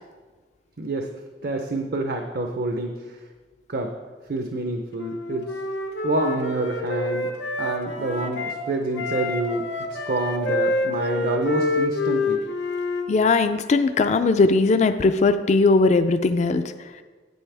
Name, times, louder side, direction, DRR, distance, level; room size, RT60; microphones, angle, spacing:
voice 1, 0.8-1.1 1.4-3.2 3.7-4.0 4.3-5.6 6.0-7.3 7.6-9.7 10.1-12.4, right 2 dB, 60° right, 4 dB, 0.6 m, -27 dB
Wind instrument woodwind instrument, 5.0-8.6 8.9-13.1, left 2 dB, 85° left, 1.0 m, -27 dB
voice 2, 13.1-16.6, left 3 dB, 40° left, 10 dB, 0.3 m, -19 dB
9.3 x 9.0 x 3.4 m, 1.4 s
head